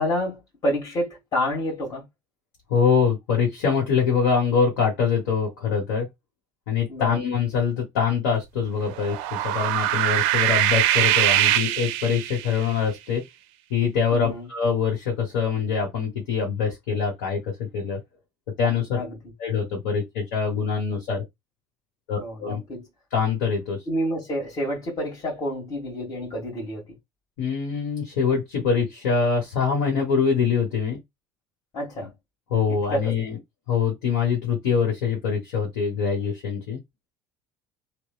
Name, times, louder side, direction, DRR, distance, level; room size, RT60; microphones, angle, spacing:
voice 1, 0.0-2.0 6.9-7.2 14.1-14.5 18.9-19.2 22.2-22.9 23.9-26.9 31.7-32.1 32.7-33.1, equal, 40° left, 1.6 m, -29 dB
voice 2, 2.7-6.1 6.7-13.2 13.7-18.0 18.6-19.0 19.4-21.2 22.1-22.6 23.1-23.8 27.4-31.0 32.5-33.4 33.7-36.8, left 6 dB, 75° left, 1.0 m, -24 dB
sound 1, 8.9-12.6, right 13 dB, 70° right, 0.4 m, -22 dB
2.9 x 2.1 x 2.3 m
hypercardioid pair, 80°, 10 cm